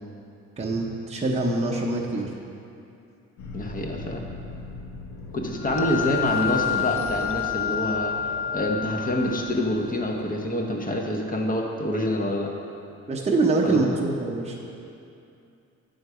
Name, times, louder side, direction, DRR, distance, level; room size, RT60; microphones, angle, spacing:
voice 1, 0.6-2.3 13.1-14.6, right 2 dB, 20° right, -2 dB, 0.7 m, -24 dB
sound 1, 3.4-9.9, left 3 dB, 75° left, 0.8 m, -42 dB
voice 2, 3.5-4.2 5.3-8.1 8.5-12.5 13.6-13.8, left 1 dB, 30° left, 1 dB, 0.9 m, -26 dB
sound 2, 5.6-9.5, left 9 dB, 45° left, 0.5 m, -28 dB
sound 3, 5.6-10.8, right 6 dB, 70° right, 0.5 m, -40 dB
7.9 x 3.9 x 4.8 m, 2.6 s
cardioid pair, 90°, 30 cm